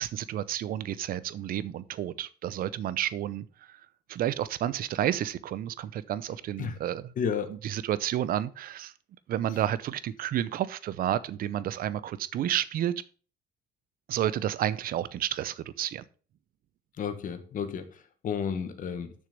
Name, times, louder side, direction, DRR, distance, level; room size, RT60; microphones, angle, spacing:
voice 1, 0.0-3.8 4.1-7.1 7.6-8.9 9.3-12.9 14.1-16.0, right 11 dB, 60° right, 0.7 m, -31 dB
voice 2, 7.2-7.5 17.0-19.1, left 7 dB, 50° left, 1.5 m, -32 dB
6.9 x 6.5 x 5.3 m
cardioid pair, 110°, 17 cm